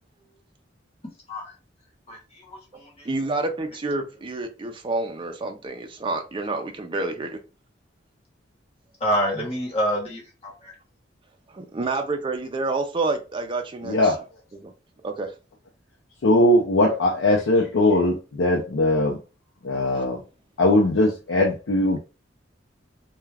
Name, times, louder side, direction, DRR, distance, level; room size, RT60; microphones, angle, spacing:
voice 1, 2.5-3.1 9.0-10.7, equal, 30° left, 1.1 m, -27 dB
voice 2, 3.0-7.4 11.5-14.1 14.5-14.7 15.0-15.3 19.9-20.0, right 3 dB, 25° right, 0.4 m, -28 dB
voice 3, 13.8-14.2 16.2-19.2 19.6-20.2 20.6-22.0, left 1 dB, 85° left, 0.5 m, -20 dB
2.3 x 2.2 x 3.2 m
head